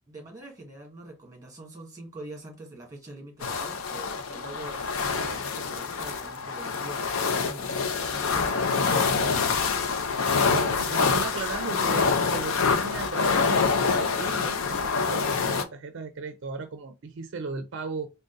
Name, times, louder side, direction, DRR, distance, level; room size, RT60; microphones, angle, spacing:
voice 1, 0.1-9.1, right 2 dB, 15° right, 1.5 m, -44 dB
sound 1, 3.4-15.6, left 5 dB, 70° left, 0.5 m, -26 dB
voice 2, 10.5-18.1, right 4 dB, 60° right, 0.4 m, -37 dB
3.7 x 2.1 x 3.8 m
head